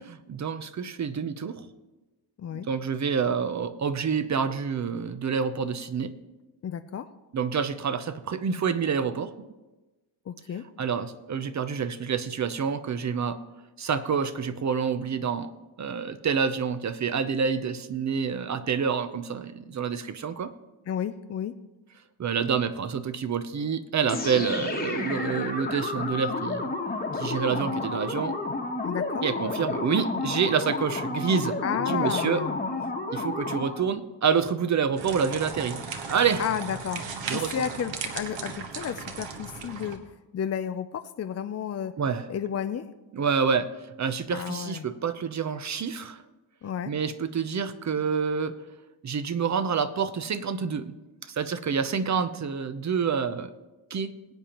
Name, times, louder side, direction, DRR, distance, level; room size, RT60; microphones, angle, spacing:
voice 1, 0.3-1.7 2.5-6.1 7.3-9.3 10.8-13.4 13.8-15.5 15.8-20.5 22.2-26.7 27.1-28.4 29.2-32.4 33.1-35.8 36.1-36.4 37.3-37.5 42.0-42.3 43.1-43.7 44.0-46.2 46.9-48.6 49.0-50.9 51.2-53.5 53.9-54.1, right 6 dB, 35° right, 12 dB, 0.7 m, -27 dB
voice 2, 6.6-7.1 10.3-10.6 20.9-21.5 28.8-29.2 31.6-32.6 36.4-40.0 40.3-41.9 42.3-42.9 44.3-44.9 46.6-46.9, left 8 dB, 35° left, 8 dB, 0.4 m, -32 dB
sound 1, 24.1-33.9, left 3 dB, 20° left, 1.2 m, -31 dB
sound 2, 35.0-40.0, right 5 dB, 60° right, 1.4 m, -36 dB
21.5 x 8.6 x 3.0 m, 1.1 s
cardioid pair, 110°, 49 cm